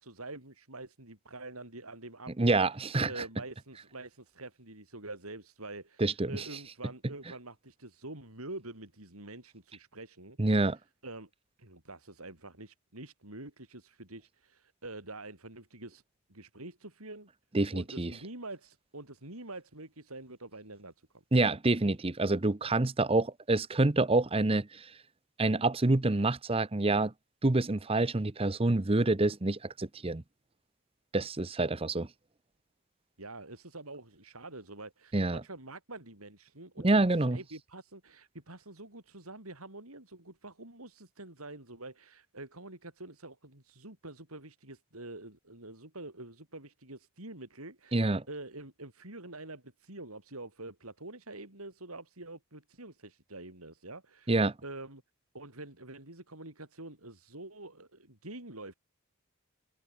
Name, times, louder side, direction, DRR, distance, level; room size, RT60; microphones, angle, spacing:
voice 1, 0.0-2.6 3.1-10.7 11.0-11.3 11.6-16.0 16.3-17.3 17.7-20.9 33.2-55.0 55.3-58.7, right 2 dB, 85° right, 7.7 m, -46 dB
voice 2, 2.4-3.2 6.0-6.4 10.4-10.8 17.5-18.1 21.3-24.9 25.4-27.1 27.4-30.2 31.1-32.1 35.1-35.4 36.8-37.4 47.9-48.2 54.3-54.5, right 2 dB, 25° right, 0.8 m, -27 dB
open air
head